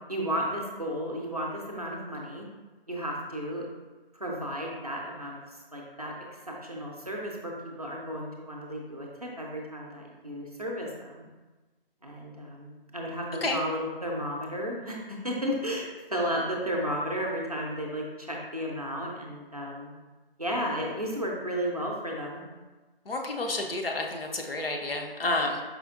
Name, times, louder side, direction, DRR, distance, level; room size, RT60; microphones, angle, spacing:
voice 1, 0.1-2.5 2.9-3.7 4.1-6.1 6.5-11.2 12.0-19.9 20.4-22.4, equal, 40° right, -2 dB, 0.5 m, -33 dB
voice 2, 23.1-25.6, left 2 dB, 70° left, 2 dB, 0.7 m, -30 dB
4.9 x 3.3 x 2.4 m, 1.2 s
figure-of-eight pair, 175°, 30 cm